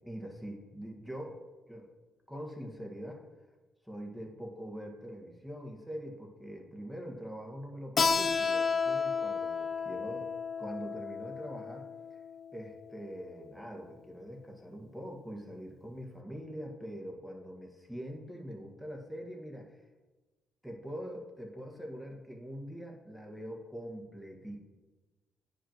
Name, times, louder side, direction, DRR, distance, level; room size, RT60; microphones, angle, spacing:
voice 1, 0.0-1.9 2.3-3.2 3.8-10.3 10.6-11.9 12.5-19.8 20.6-24.6, equal, ahead, 0 dB, 1.6 m, -43 dB
Keyboard (musical), 8.0-13.2, left 5 dB, 50° left, 0.5 m, -32 dB
9.9 x 5.1 x 3.0 m, 1.2 s
supercardioid pair, 55°, 0 cm